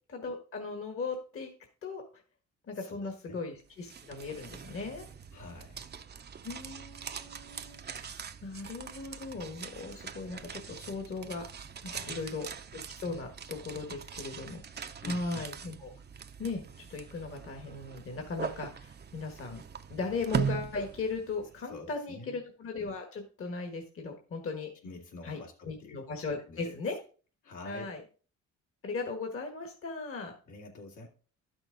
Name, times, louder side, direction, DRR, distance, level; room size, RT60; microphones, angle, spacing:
voice 1, 0.1-1.5 1.8-2.0 2.7-5.1 6.4-11.4 11.8-12.5 12.7-15.9 16.4-19.6 19.9-24.7 25.2-25.4 25.6-27.0 27.6-28.0 28.8-30.3, left 4 dB, 45° left, 3 dB, 1.6 m, -38 dB
voice 2, 2.8-3.4 5.3-5.9 11.9-12.2 15.0-15.5 21.7-22.4 24.8-26.0 26.5-26.8 27.4-27.9 30.5-31.1, left 2 dB, 75° left, 0 dB, 2.6 m, -47 dB
sound 1, 3.6-21.6, right 7 dB, 35° right, 0.7 m, -41 dB
11.5 x 6.1 x 3.9 m, 0.39 s
cardioid pair, 90°, 30 cm